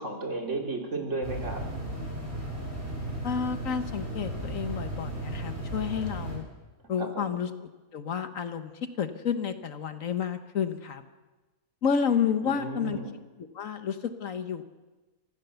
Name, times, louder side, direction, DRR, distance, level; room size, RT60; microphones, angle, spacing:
voice 1, 0.0-1.6 7.0-7.4 12.4-13.1, right 2 dB, 55° right, 1 dB, 3.2 m, -34 dB
sound 1, 1.2-6.4, right 1 dB, 35° right, 5.9 m, -35 dB
voice 2, 3.2-6.4 6.9-7.5 7.9-8.7 9.0-11.0 11.8-13.0 13.4-14.6, left 7 dB, 65° left, 9 dB, 1.4 m, -30 dB
25.5 x 15.5 x 7.0 m, 1.2 s
omnidirectional pair, 1.5 m